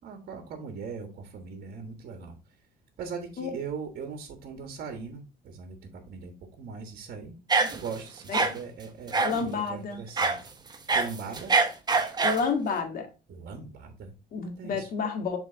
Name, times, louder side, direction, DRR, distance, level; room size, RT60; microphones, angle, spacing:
voice 1, 0.0-2.4 3.0-10.5 10.9-11.5 13.3-14.9, right 5 dB, 60° right, 1.4 m, -40 dB
sound 1, 7.5-8.0 8.3-8.5 9.1-9.4 10.2-10.4 10.7-12.5, right 4 dB, 25° right, 0.9 m, -24 dB
voice 2, 9.2-10.0 12.2-13.1 14.3-15.4, left 5 dB, 55° left, 1.7 m, -29 dB
7.4 x 3.6 x 3.8 m
cardioid pair, 110°, 17 cm